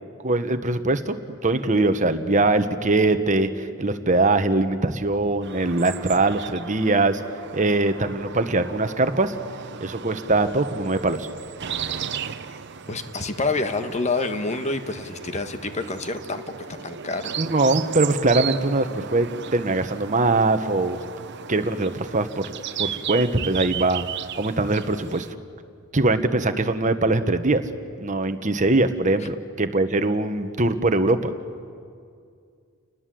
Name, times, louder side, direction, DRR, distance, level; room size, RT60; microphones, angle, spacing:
voice 1, 0.2-1.2 1.4-7.2 7.5-9.3 9.8-11.3 17.4-21.0 21.5-24.1 24.4-25.3 25.9-27.6 28.0-31.3, right 2 dB, 35° right, 9 dB, 1.2 m, -22 dB
sound 1, 5.4-25.3, right 8 dB, 55° right, 0.8 m, -35 dB
voice 2, 12.9-16.4 16.7-17.4 29.2-29.3, left 3 dB, 35° left, 8 dB, 1.4 m, -27 dB
30.0 x 20.0 x 7.7 m, 2.3 s
head